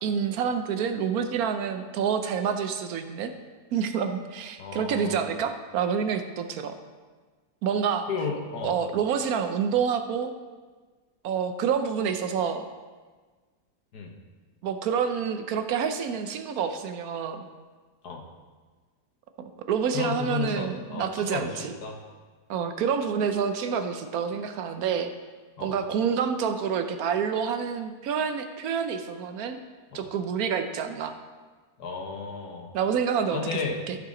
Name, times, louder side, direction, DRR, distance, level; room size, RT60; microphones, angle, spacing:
voice 1, 0.0-3.3 3.7-6.7 7.6-8.1 8.6-10.3 11.2-12.7 14.6-17.5 19.4-21.7 22.5-25.1 25.6-29.6 29.9-31.1 32.7-33.6 33.9-34.0, right 7 dB, 70° right, 8 dB, 1.1 m, -28 dB
voice 2, 4.6-5.2 8.1-8.8 13.9-14.1 18.0-18.2 19.9-22.0 25.6-25.7 29.9-30.0 31.8-32.7 33.3-33.8, left 5 dB, 75° left, 2 dB, 1.7 m, -33 dB
14.0 x 5.7 x 3.8 m, 1.4 s
omnidirectional pair, 1.7 m